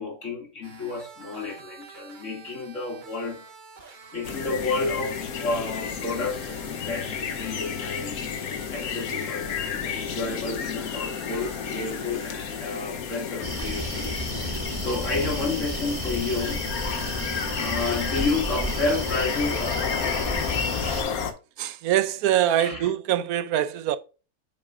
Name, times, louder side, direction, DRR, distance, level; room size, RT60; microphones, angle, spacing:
voice 1, 0.0-3.4 4.1-8.2 8.7-16.6 17.1-20.1 22.6-22.9, left 3 dB, 55° left, 2.8 m, -31 dB
sound 1, 0.6-12.7, right 5 dB, 35° right, 1.0 m, -48 dB
sound 2, 4.2-21.3, left 7 dB, 75° left, 1.4 m, -32 dB
sound 3, 13.4-21.0, equal, 15° right, 1.5 m, -32 dB
voice 2, 21.6-24.0, right 11 dB, 85° right, 1.1 m, -24 dB
8.8 x 6.3 x 2.5 m
omnidirectional pair, 1.5 m